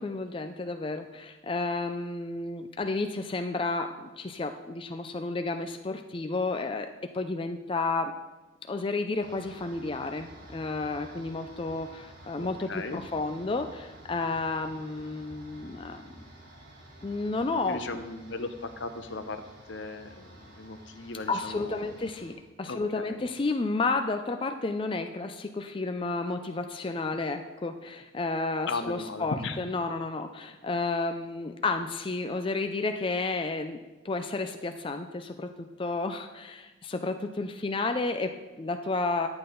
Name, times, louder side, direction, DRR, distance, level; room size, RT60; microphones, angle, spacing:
voice 1, 0.0-8.1 8.7-16.2 17.0-18.0 21.3-33.8 34.0-39.3, left 3 dB, 25° left, 6 dB, 0.4 m, -31 dB
sound 1, 9.2-22.3, right 1 dB, 90° right, 3.8 m, -51 dB
voice 2, 12.4-13.0 17.7-19.4 19.7-21.8 22.7-23.3 28.7-29.6, left 3 dB, 75° left, 8 dB, 0.8 m, -37 dB
11.0 x 8.8 x 3.9 m, 1.2 s
head